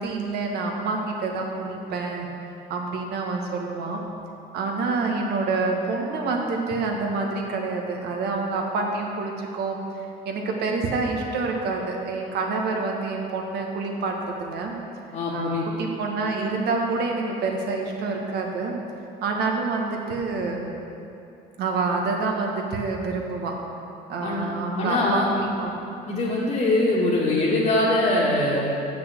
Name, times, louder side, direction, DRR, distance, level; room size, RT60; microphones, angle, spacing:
voice 1, 0.0-2.3 2.7-4.1 4.5-9.8 10.2-14.8 15.3-18.8 19.2-20.7 21.6-23.5 24.1-25.7, right 3 dB, 75° right, 1 dB, 1.5 m, -27 dB
voice 2, 15.1-15.7 24.2-24.5 24.8-25.3 26.1-28.7, left 2 dB, 50° left, -8 dB, 1.7 m, -22 dB
8.4 x 5.9 x 7.6 m, 2.8 s
cardioid pair, 110°, 17 cm